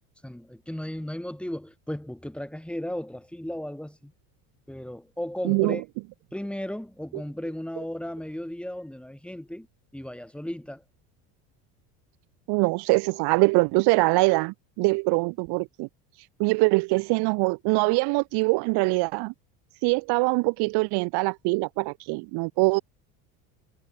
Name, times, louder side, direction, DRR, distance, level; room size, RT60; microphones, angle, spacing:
voice 1, 0.2-4.1 4.7-5.8 6.3-9.7 9.9-10.8, left 1 dB, 5° left, 7.8 m, -35 dB
voice 2, 5.4-5.8 12.5-15.9 16.4-19.3 19.8-22.8, right 27 dB, 65° right, 1.1 m, -23 dB
supercardioid pair, 110°, 42 cm